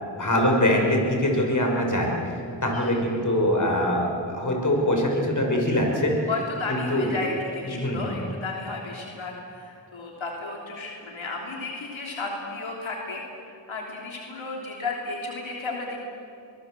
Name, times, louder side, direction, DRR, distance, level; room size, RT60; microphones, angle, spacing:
voice 1, 0.2-6.3 6.7-7.1 7.6-8.2, left 1 dB, 40° left, 1 dB, 5.8 m, -23 dB
voice 2, 6.3-13.2 13.7-16.0, left 3 dB, 90° left, -1 dB, 3.3 m, -33 dB
23.5 x 20.5 x 7.7 m, 2.5 s
wide cardioid pair, 65°, 46 cm